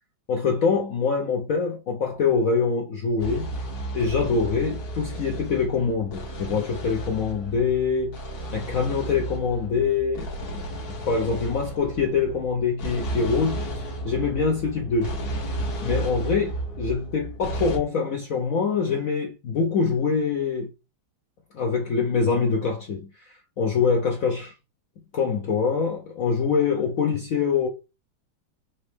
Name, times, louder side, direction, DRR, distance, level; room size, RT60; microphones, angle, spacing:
voice 1, 0.3-3.5 3.9-8.2 8.5-10.6 11.1-15.2 15.8-20.7 21.5-24.5 25.1-27.7, left 5 dB, 75° left, 0.7 m, -24 dB
sound 1, 3.2-17.8, right 1 dB, 55° left, 1.7 m, -33 dB
4.2 x 2.9 x 3.2 m
omnidirectional pair, 2.2 m